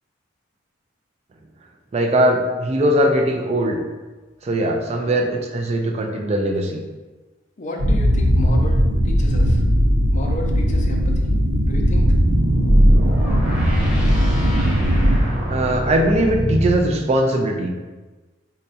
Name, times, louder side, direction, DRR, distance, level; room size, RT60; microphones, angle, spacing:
voice 1, 1.9-3.8 4.4-6.8 15.2-17.8, right 1 dB, 35° right, 2 dB, 0.3 m, -20 dB
voice 2, 7.6-9.6 10.1-11.2 11.6-12.1, left 2 dB, 40° left, 1 dB, 0.4 m, -32 dB
sound 1, 7.8-15.2, equal, 80° right, 0.5 m, -18 dB
sound 2, 11.6-16.8, right 1 dB, 5° right, 0.8 m, -24 dB
3.9 x 2.2 x 2.7 m, 1.2 s
head